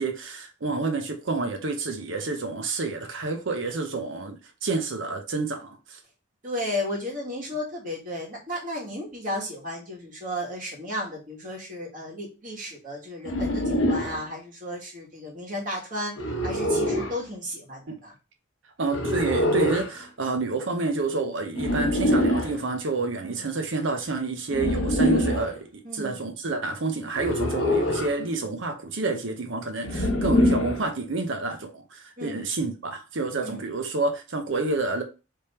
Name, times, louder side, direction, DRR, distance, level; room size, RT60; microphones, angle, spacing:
voice 1, 0.0-6.0 17.9-18.0 18.8-35.0, right 3 dB, 70° right, 0.7 m, -29 dB
voice 2, 6.4-16.1 16.4-18.1 23.2-23.4 25.8-26.3 30.4-30.6 32.2-32.7 33.4-33.6, left 1 dB, 40° right, 1.8 m, -34 dB
sound 1, 13.3-14.2 16.2-17.2 18.9-19.9 21.6-22.6 24.5-25.5 27.2-28.2 29.8-30.9, equal, 70° left, 0.9 m, -24 dB
3.5 x 3.3 x 4.2 m
head